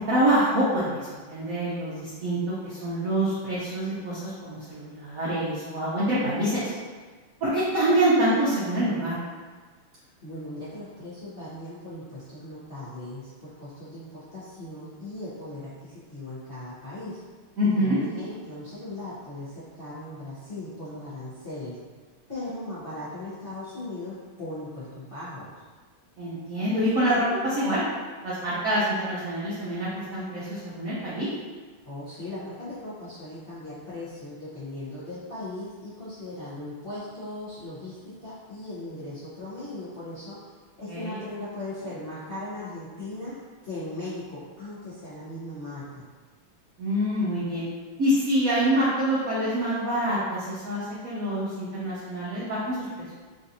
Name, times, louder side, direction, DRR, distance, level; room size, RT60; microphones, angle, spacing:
voice 1, 0.0-6.7 7.4-9.2 17.6-18.0 26.2-27.8 28.2-31.3 40.9-41.2 46.8-47.7 48.0-53.2, right 1 dB, 90° right, -9 dB, 0.7 m, -26 dB
voice 2, 10.2-17.2 17.7-21.8 22.3-25.5 31.8-43.3 43.6-46.1, left 1 dB, 80° left, -12 dB, 0.5 m, -38 dB
3.8 x 2.6 x 2.7 m, 1.4 s
omnidirectional pair, 2.4 m